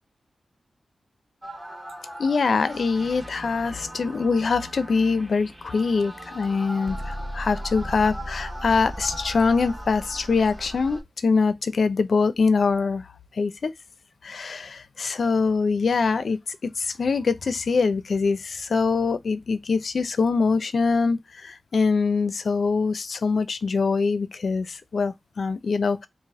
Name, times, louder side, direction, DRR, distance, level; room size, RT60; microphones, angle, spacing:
sound 1, 1.4-11.0, equal, 10° right, 0.7 m, -37 dB
voice 1, 2.2-13.0 13.4-13.7 14.2-26.1, left 4 dB, 60° left, 0.4 m, -24 dB
3.3 x 2.5 x 3.5 m
wide cardioid pair, 115°, 0 cm